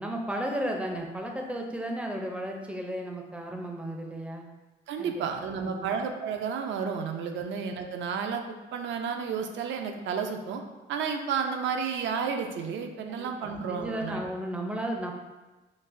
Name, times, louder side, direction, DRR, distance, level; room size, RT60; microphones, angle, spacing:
voice 1, 0.0-4.4 5.0-5.2 5.6-5.9 7.3-7.4 13.2-15.1, right 1 dB, 5° right, 1 dB, 0.4 m, -34 dB
voice 2, 4.9-8.4 8.7-10.6 10.9-14.2, right 6 dB, 70° right, 5 dB, 0.4 m, -31 dB
3.9 x 2.0 x 2.5 m, 1.2 s
cardioid pair, 90°, 20 cm